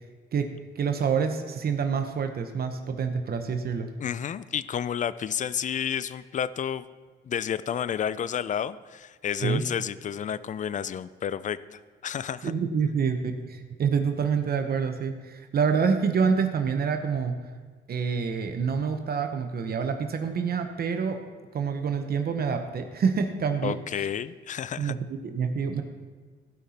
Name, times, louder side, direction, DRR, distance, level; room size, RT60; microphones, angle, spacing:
voice 1, 0.8-3.9 9.4-9.6 12.4-17.4 17.9-21.2 21.5-24.1 24.8-25.8, right 6 dB, 50° right, 6 dB, 0.9 m, -27 dB
voice 2, 4.0-6.8 7.2-12.5 23.6-25.0, left 8 dB, 40° left, 16 dB, 0.4 m, -31 dB
15.5 x 5.7 x 4.2 m, 1.4 s
cardioid pair, 90°, 20 cm